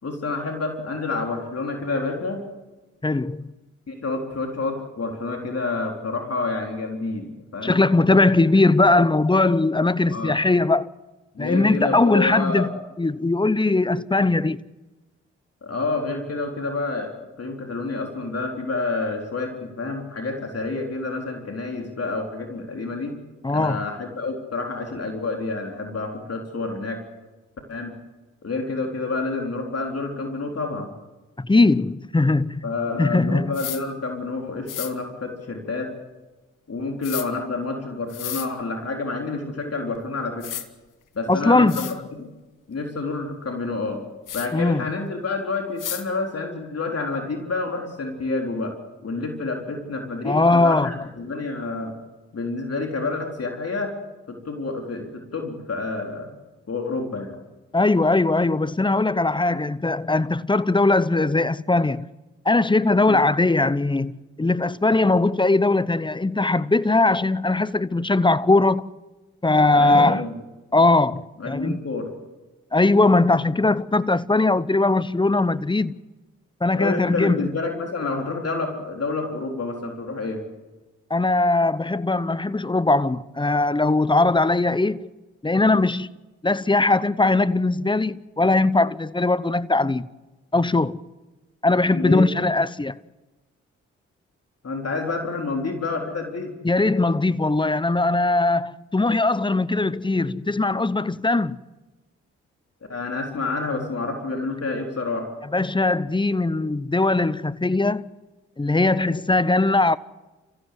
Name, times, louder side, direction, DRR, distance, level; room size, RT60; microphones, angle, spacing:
voice 1, 0.0-2.5 3.9-7.8 10.1-10.4 11.3-12.7 15.6-17.1 17.4-23.1 23.5-27.0 27.7-27.9 28.4-30.9 32.6-35.9 36.7-40.5 41.1-42.3 42.7-44.0 44.3-48.7 49.0-51.9 52.3-54.0 54.3-56.3 56.7-57.4 63.1-63.2 69.7-70.3 71.4-72.1 76.8-80.4 91.9-92.2 94.6-96.5 102.9-105.3, left 3 dB, 50° left, 4.1 m, -28 dB
voice 2, 3.0-3.5 7.6-10.9 11.4-14.6 23.4-23.9 31.4-32.6 33.0-33.5 41.3-42.0 44.5-44.9 50.2-51.0 57.7-62.1 62.4-68.9 69.4-70.2 70.7-71.8 72.7-76.0 76.6-77.5 81.1-85.1 85.4-86.1 86.4-90.1 90.5-91.0 91.6-93.0 96.6-101.6 105.5-108.1 108.6-110.0, left 2 dB, 15° left, 0.9 m, -20 dB
sound 1, 33.5-33.8 34.7-34.9 37.0-37.3 38.1-38.5 39.9-40.0 40.4-40.7 41.3-41.4 41.7-42.0 44.3-44.5 45.8-46.0, left 11 dB, 70° left, 1.4 m, -32 dB
30.0 x 15.0 x 7.9 m
hypercardioid pair, 45°, 32 cm